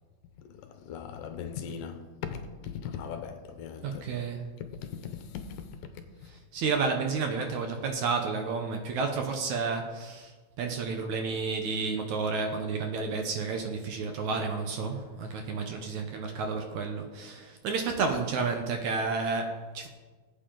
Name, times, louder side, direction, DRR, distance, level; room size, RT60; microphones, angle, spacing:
voice 1, 0.8-2.0 2.3-4.0 4.8-5.5, left 7 dB, 75° left, 2.4 m, -39 dB
voice 2, 3.8-4.4 6.5-19.9, right 4 dB, 65° right, 2.1 m, -31 dB
19.5 x 8.7 x 3.9 m
omnidirectional pair, 4.1 m